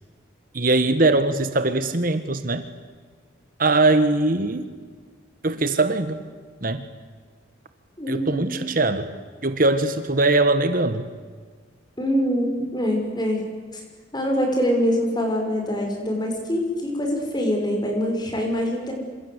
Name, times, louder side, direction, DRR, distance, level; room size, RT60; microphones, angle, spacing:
voice 1, 0.5-2.7 3.6-4.7 5.4-6.2 6.6-6.9 8.1-9.1 9.4-11.0, right 2 dB, 45° right, 10 dB, 1.4 m, -21 dB
voice 2, 8.0-8.5 12.0-13.4 13.7-13.8 14.1-18.9, equal, 20° left, 2 dB, 6.4 m, -24 dB
27.5 x 26.5 x 8.2 m, 1.5 s
head